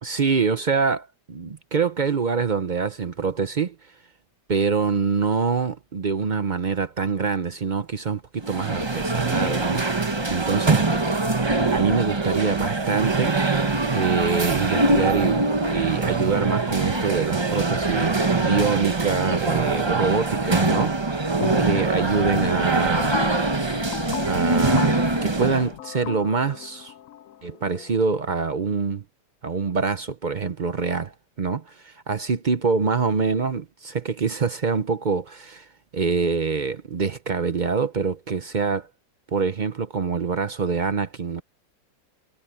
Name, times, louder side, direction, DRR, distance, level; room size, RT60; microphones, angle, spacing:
voice 1, 0.0-3.7 4.5-10.8 11.7-13.3 13.9-15.4 15.7-21.3 21.6-23.2 24.2-26.9 27.4-29.0 29.4-35.7 35.9-38.9 39.3-41.4, right 5 dB, 55° right, 0.5 m, -25 dB
sound 1, 8.4-25.7, right 3 dB, 20° right, 0.7 m, -23 dB
sound 2, 20.6-21.1 21.4-21.9 22.2-28.0, left 13 dB, 70° left, 0.8 m, -35 dB
omnidirectional pair, 2.0 m